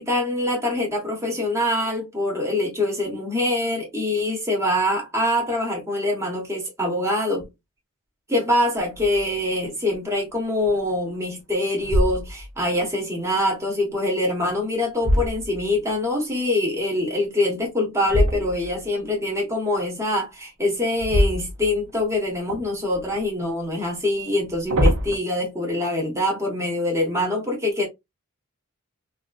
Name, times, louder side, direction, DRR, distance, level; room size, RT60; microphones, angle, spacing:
voice 1, 0.0-7.4 8.3-27.9, left 1 dB, 15° right, 1.0 m, -24 dB
sound 1, 8.9-9.4 9.9-10.0 10.6-11.2 11.8-12.7 14.3-16.0 18.0-18.9 20.9-22.1 22.5-23.2 24.3-25.2, equal, 60° right, 1.0 m, -25 dB
3.6 x 2.5 x 2.2 m
head